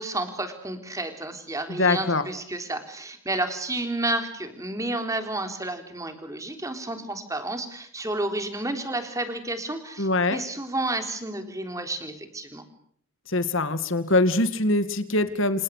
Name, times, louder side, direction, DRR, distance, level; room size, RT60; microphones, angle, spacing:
voice 1, 0.0-12.6, right 2 dB, 15° right, 7 dB, 3.6 m, -31 dB
voice 2, 1.7-2.2 10.0-10.4 13.3-15.6, left 2 dB, 60° left, 11 dB, 2.0 m, -23 dB
29.0 x 28.0 x 6.5 m, 0.64 s
head